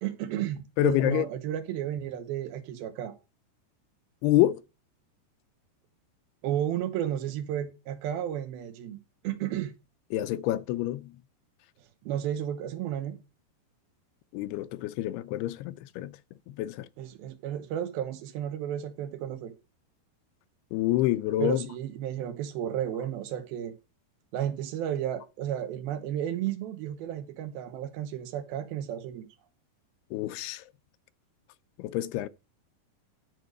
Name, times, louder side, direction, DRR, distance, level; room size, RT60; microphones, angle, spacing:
voice 1, 0.0-3.2 6.4-9.0 9.2-9.7 12.0-13.2 17.0-19.5 21.4-23.7 24.3-29.3, right 10 dB, 70° right, 2.8 m, -33 dB
voice 2, 0.8-1.3 4.2-4.6 10.1-11.1 14.3-16.2 16.5-16.9 20.7-21.7 30.1-30.6 31.8-32.3, left 14 dB, 80° left, 2.5 m, -27 dB
12.5 x 4.3 x 6.6 m
omnidirectional pair, 4.9 m